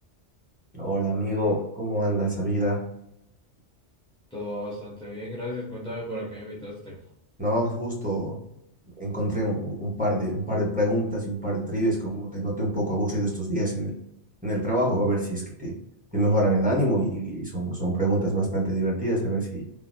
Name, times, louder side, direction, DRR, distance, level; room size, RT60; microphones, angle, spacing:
voice 1, 0.7-2.8 7.4-8.4 9.0-13.9 14.4-15.8 16.1-19.6, right 1 dB, 10° right, -5 dB, 0.9 m, -26 dB
voice 2, 4.3-7.1, left 1 dB, 5° left, -6 dB, 0.4 m, -35 dB
3.3 x 2.2 x 2.6 m, 0.79 s
omnidirectional pair, 1.2 m